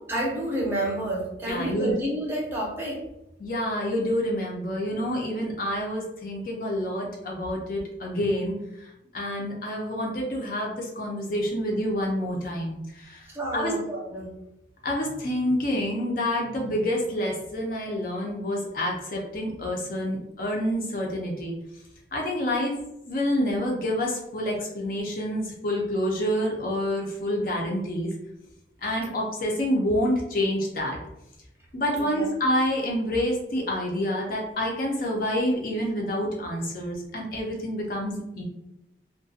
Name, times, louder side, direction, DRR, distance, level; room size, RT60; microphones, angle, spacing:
voice 1, 0.1-3.0 13.3-14.4 32.0-32.3, right 1 dB, 15° right, -4 dB, 0.6 m, -29 dB
voice 2, 1.5-1.9 3.4-13.2 13.5-13.7 14.8-21.5 22.1-22.7 23.1-28.1 28.8-31.0 31.7-38.4, equal, 50° left, -1 dB, 0.5 m, -28 dB
2.4 x 2.2 x 2.6 m, 0.86 s
head